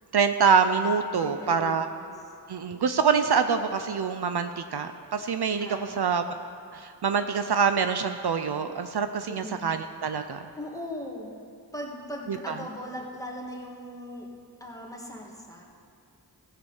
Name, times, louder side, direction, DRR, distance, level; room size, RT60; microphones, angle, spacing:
voice 1, 0.1-1.9 2.5-5.7 6.0-6.2 6.7-10.4 12.3-12.5, right 6 dB, 65° right, 8 dB, 0.6 m, -25 dB
voice 2, 1.2-2.3 5.6-6.2 9.3-9.8 10.6-11.3 11.7-14.3 14.6-15.6, equal, 10° left, -1 dB, 1.9 m, -39 dB
15.0 x 6.1 x 7.2 m, 2.4 s
wide cardioid pair, 40°, 42 cm